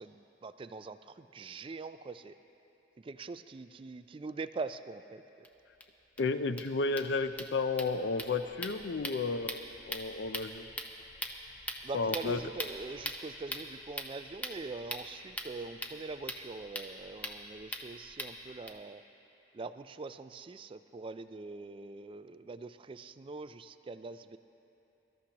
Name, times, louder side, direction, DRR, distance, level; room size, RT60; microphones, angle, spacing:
voice 1, 0.0-2.3 3.0-5.5 11.8-19.0 19.5-24.4, right 3 dB, 30° right, 12 dB, 0.3 m, -43 dB
sound 1, 5.4-5.5 5.8-5.9 6.2-6.3 6.5-18.7, left 1 dB, 10° left, 0.7 m, -42 dB
voice 2, 6.2-10.6 11.9-12.4, left 3 dB, 70° left, 11 dB, 0.5 m, -32 dB
23.5 x 13.0 x 2.9 m, 3.0 s
head